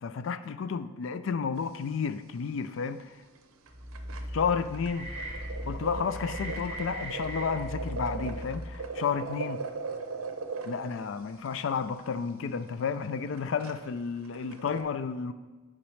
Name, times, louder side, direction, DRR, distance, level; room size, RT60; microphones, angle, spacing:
voice 1, 0.0-3.1 4.3-5.1 5.7-9.6 10.6-15.3, left 6 dB, 65° left, 0.4 m, -32 dB
sound 1, 1.6-2.0 2.3-2.4 2.7-2.9 3.4-3.5 3.7-14.8, right 4 dB, 85° right, 0.6 m, -39 dB
sound 2, 3.7-9.0, equal, 30° right, 1.4 m, -38 dB
10.0 x 5.1 x 3.2 m
head